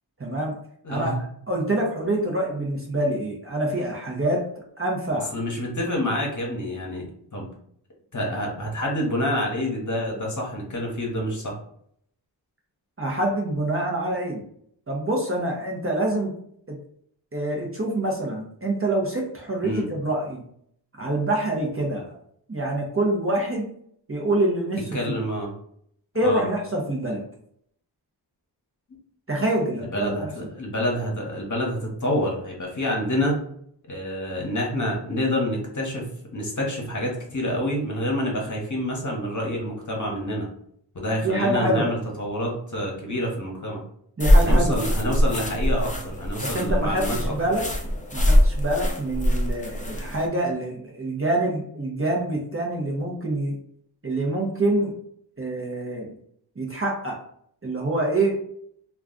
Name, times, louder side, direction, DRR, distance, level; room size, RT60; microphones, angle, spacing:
voice 1, 0.2-0.5 0.9-1.1 1.5-5.3 13.0-14.4 14.9-16.3 16.7-16.8 17.3-20.4 21.0-22.2 22.5-23.7 24.1-24.9 26.1-27.2 29.3-30.3 41.2-41.9 44.2-44.9 46.4-47.7 48.1-53.6 54.0-54.9 55.4-56.2 56.6-57.2 57.6-58.4, right 1 dB, 30° right, -1 dB, 0.7 m, -26 dB
voice 2, 0.8-1.2 2.0-2.3 5.3-7.1 7.3-7.5 8.1-11.6 19.6-19.9 24.9-25.5 26.2-26.4 29.8-30.3 30.6-33.4 33.9-40.5 40.9-43.8 44.4-47.2, equal, 40° left, -2 dB, 1.0 m, -27 dB
sound 1, 44.2-50.3, equal, 15° left, 0.5 m, -22 dB
2.4 x 2.3 x 3.7 m, 0.67 s
wide cardioid pair, 70°, 45 cm